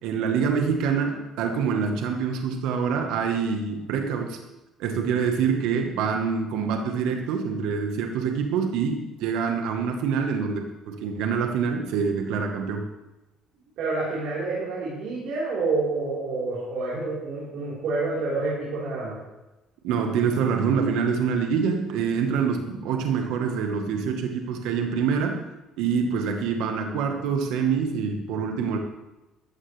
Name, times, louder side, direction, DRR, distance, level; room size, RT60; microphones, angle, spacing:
voice 1, 0.0-4.4 4.8-12.9 19.8-25.4 25.8-28.8, right 6 dB, 85° right, 4 dB, 1.2 m, -25 dB
voice 2, 13.8-19.2, right 3 dB, 65° right, -7 dB, 3.9 m, -28 dB
13.5 x 13.0 x 3.2 m, 1.0 s
cardioid pair, 155°, 0 cm